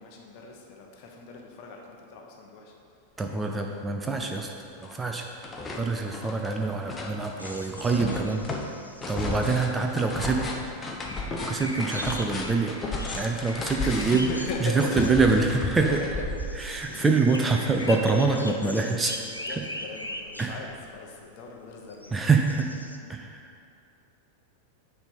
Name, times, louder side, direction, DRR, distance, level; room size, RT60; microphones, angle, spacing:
voice 1, 0.0-2.7 9.0-9.6 13.8-15.5 15.8-16.1 16.5-16.6 16.9-17.2 17.7-18.9 19.4-22.1, left 4 dB, 45° left, 0 dB, 1.0 m, -38 dB
voice 2, 3.2-4.5 4.8-5.3 5.8-8.4 9.1-10.5 11.4-12.8 13.1-14.3 14.6-16.0 16.6-19.1 19.5-19.6 20.4-20.6 22.1-22.7 23.1-23.5, right 4 dB, 15° right, 3 dB, 0.5 m, -25 dB
sound 1, 3.8-3.9 4.2-5.0 5.2-16.9, left 2 dB, 20° left, 0.8 m, -34 dB
sound 2, 7.4-23.0, left 1 dB, 85° left, 0.5 m, -41 dB
8.8 x 3.4 x 5.4 m, 2.5 s
figure-of-eight pair, 90°, 0 cm